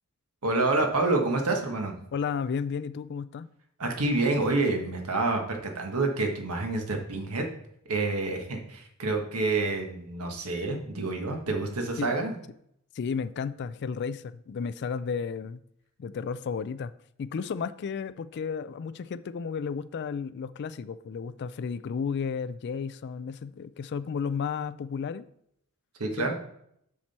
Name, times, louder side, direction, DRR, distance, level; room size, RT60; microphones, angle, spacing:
voice 1, 0.4-2.0 3.8-7.4 7.9-12.4 26.0-26.3, right 2 dB, 80° right, 1.4 m, -28 dB
voice 2, 2.1-3.5 12.0-12.2 12.9-15.6 16.0-16.9 17.2-25.2 26.2-26.3, left 6 dB, 50° left, 0.3 m, -33 dB
7.2 x 6.0 x 4.3 m
head